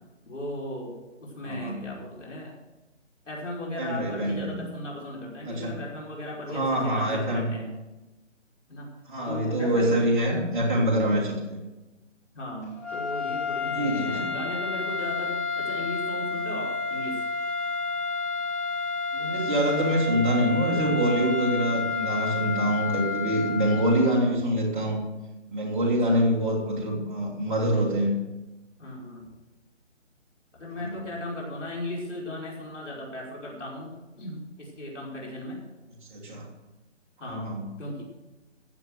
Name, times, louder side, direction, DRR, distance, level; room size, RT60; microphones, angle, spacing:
voice 1, 0.2-1.0 1.2-2.5 3.3-7.7 8.7-8.9 9.3-10.0 12.3-17.2 26.1-26.3 28.8-29.3 30.5-35.6 37.2-38.0, left 1 dB, 75° left, -3 dB, 5.3 m, -37 dB
voice 2, 1.4-1.8 3.8-4.6 5.4-5.8 6.5-7.5 9.1-11.6 13.7-14.3 19.1-25.0 25.5-28.1 30.8-31.1 36.1-36.4 37.2-37.6, right 1 dB, 10° right, -6 dB, 1.7 m, -25 dB
sound 1, 12.8-24.3, left 4 dB, 15° left, 1.6 m, -30 dB
14.5 x 7.8 x 6.4 m, 1.1 s
hypercardioid pair, 175°, 37 cm